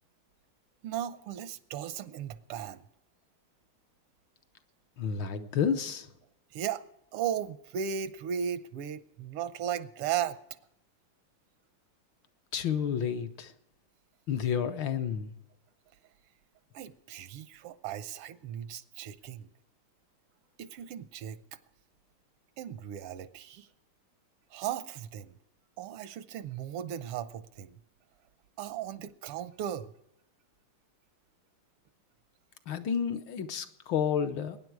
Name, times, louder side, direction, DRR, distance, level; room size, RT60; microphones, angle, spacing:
voice 1, 0.8-2.8 6.5-6.8 7.1-10.4 16.7-19.5 20.6-21.6 22.6-23.7 24.5-25.4 25.8-27.8 28.6-29.9, right 9 dB, 85° right, 14 dB, 1.7 m, -36 dB
voice 2, 5.0-6.1 12.5-13.5 14.3-15.3 32.7-34.6, left 7 dB, 65° left, 8 dB, 1.4 m, -30 dB
21.5 x 10.0 x 4.7 m, 0.82 s
omnidirectional pair, 2.4 m